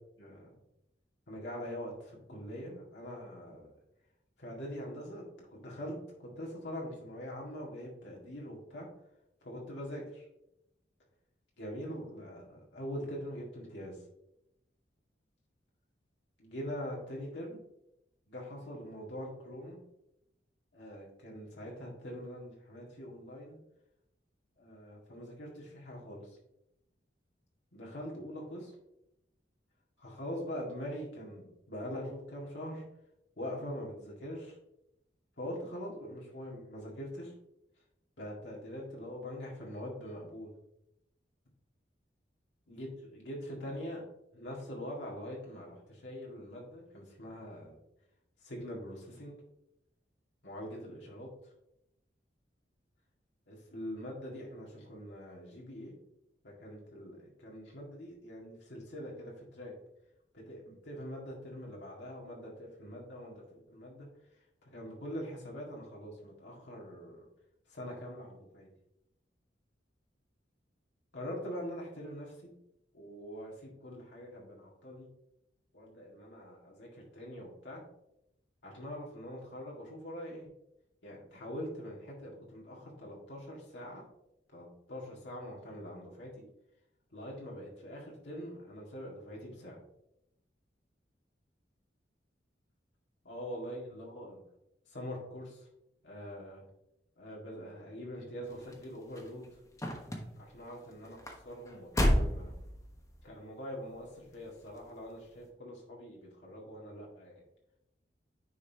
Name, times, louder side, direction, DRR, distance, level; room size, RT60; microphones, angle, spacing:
voice 1, 0.2-0.6 1.3-3.7 4.4-5.9 6.2-8.9 9.4-10.3 11.6-14.0 16.4-17.6 18.3-19.8 20.7-23.6 24.6-26.4 27.7-28.7 30.0-32.8 33.4-34.6 35.4-37.3 38.2-40.5 42.7-44.1 44.3-47.8 48.4-49.3 50.4-51.5 53.5-56.0 56.4-59.7 60.3-64.1 64.7-67.2 67.7-68.7 71.1-72.5 72.9-75.1 75.7-77.8 78.6-80.5 81.0-84.0 84.5-86.4 87.1-89.8 93.2-94.4 94.9-95.7 96.0-96.6 97.2-99.5 100.4-102.5 103.2-107.3, equal, 70° left, -3 dB, 1.9 m, -43 dB
sound 1, 98.5-103.3 104.0-104.3 104.7-104.8, equal, 20° left, 1.2 m, -32 dB
9.7 x 5.4 x 2.8 m, 0.85 s
head